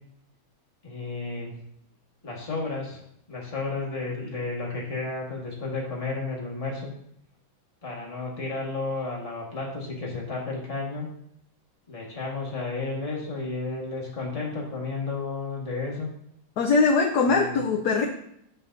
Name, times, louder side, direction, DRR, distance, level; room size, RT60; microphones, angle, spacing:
voice 1, 0.8-1.5 2.2-3.0 3.3-6.9 7.8-11.1 11.9-16.1 17.3-17.6, left 3 dB, 20° left, -3 dB, 1.5 m, -32 dB
voice 2, 16.6-18.0, left 4 dB, 65° left, 2 dB, 1.1 m, -21 dB
7.8 x 7.0 x 2.6 m, 0.73 s
omnidirectional pair, 2.3 m